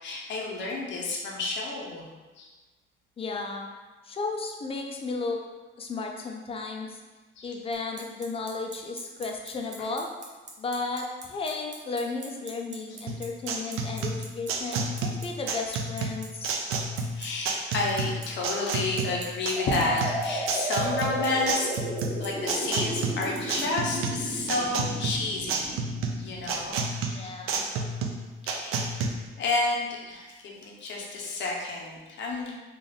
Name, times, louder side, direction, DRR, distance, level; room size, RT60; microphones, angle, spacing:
voice 1, 0.0-2.0 2.4-2.5 7.4-7.5 17.2-21.7 22.2-25.7 26.2-27.3 28.4-29.0 29.4-32.5, left 3 dB, 60° left, -2 dB, 0.7 m, -30 dB
voice 2, 3.2-3.7 4.0-5.4 5.8-7.0 7.4-10.1 10.6-16.6 27.1-27.6, left 3 dB, 25° left, 2 dB, 0.5 m, -34 dB
Bicycle, 7.7-23.6, right 4 dB, 35° right, 0.6 m, -42 dB
sound 1, 13.1-29.1, right 3 dB, 80° right, 0.5 m, -31 dB
sound 2, 19.6-27.2, right 1 dB, 20° right, 1.1 m, -34 dB
3.4 x 2.4 x 3.9 m, 1.3 s
cardioid pair, 135°, 21 cm